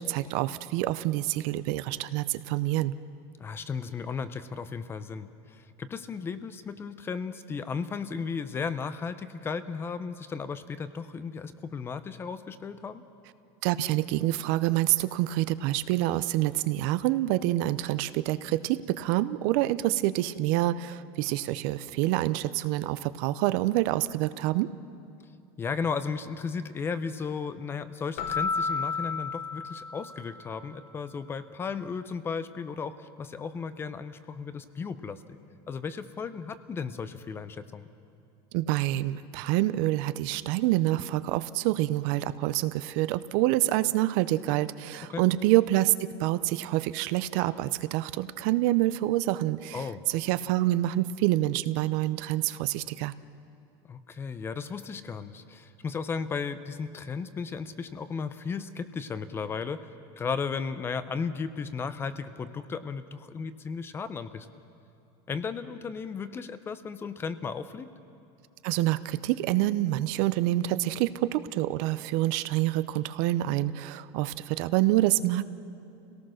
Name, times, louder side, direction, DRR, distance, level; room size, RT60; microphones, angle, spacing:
voice 1, 0.0-2.9 13.6-24.7 38.5-45.9 46.2-53.1 68.6-75.5, right 16 dB, 55° right, 15 dB, 0.6 m, -27 dB
voice 2, 3.4-13.0 25.6-35.2 35.7-37.9 45.1-45.2 49.7-50.0 53.9-59.9 60.2-64.5 65.3-67.9, left 5 dB, 20° left, 13 dB, 0.6 m, -35 dB
Keyboard (musical), 28.2-30.6, left 5 dB, 50° left, 0.9 m, -32 dB
28.0 x 18.0 x 6.4 m, 2.7 s
supercardioid pair, 160°, 13 cm